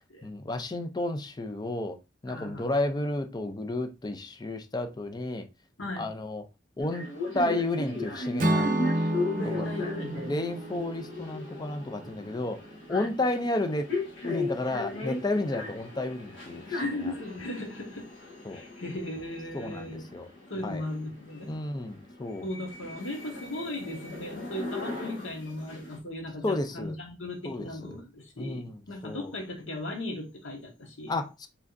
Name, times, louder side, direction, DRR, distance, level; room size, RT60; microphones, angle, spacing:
voice 1, 0.2-2.0 2.2-5.5 6.0-6.4 6.8-7.1 7.3-8.7 9.4-9.7 10.2-12.6 12.9-13.9 14.2-17.1 18.4-18.6 19.5-20.3 20.6-20.8 21.5-22.4 26.4-27.0 27.4-28.0 28.4-29.3 31.1-31.5, left 2 dB, 20° left, 0.4 m, -32 dB
voice 2, 2.3-2.7 5.8-6.1 9.3-10.2 10.7-10.9 12.9-13.1 16.8-18.1 18.5-20.0 20.5-21.5 22.4-31.2, left 1 dB, 85° left, 1.5 m, -37 dB
sound 1, 6.8-26.0, left 2 dB, 70° left, 1.6 m, -37 dB
Acoustic guitar / Strum, 8.4-12.5, right 1 dB, 45° right, 0.6 m, -30 dB
4.8 x 3.4 x 2.6 m
head